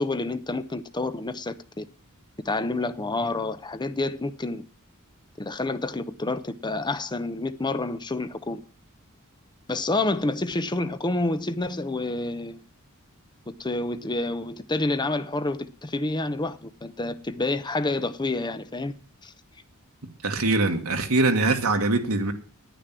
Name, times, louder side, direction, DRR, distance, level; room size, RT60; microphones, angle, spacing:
voice 1, 0.0-1.8 2.4-4.7 5.4-8.6 9.7-12.6 13.5-18.9 19.2-19.3, left 2 dB, 20° left, 0.7 m, -28 dB
voice 2, 20.0-22.3, right 2 dB, 70° right, 1.7 m, -23 dB
10.0 x 9.3 x 7.5 m
head